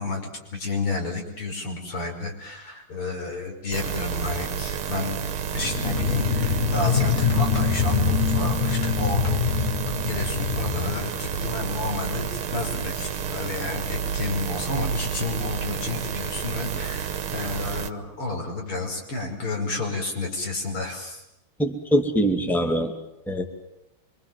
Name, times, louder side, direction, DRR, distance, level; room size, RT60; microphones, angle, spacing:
voice 1, 0.0-5.2 5.5-9.5 10.1-21.2, left 2 dB, 90° left, 1 dB, 6.3 m, -31 dB
sound 1, 3.7-17.9, right 7 dB, 80° right, 2.1 m, -30 dB
sound 2, 5.6-12.0, left 6 dB, 35° left, 1.4 m, -25 dB
voice 2, 21.6-22.9 23.3-23.4, equal, ahead, 4 dB, 2.2 m, -23 dB
26.0 x 25.0 x 7.6 m, 0.87 s
omnidirectional pair, 2.3 m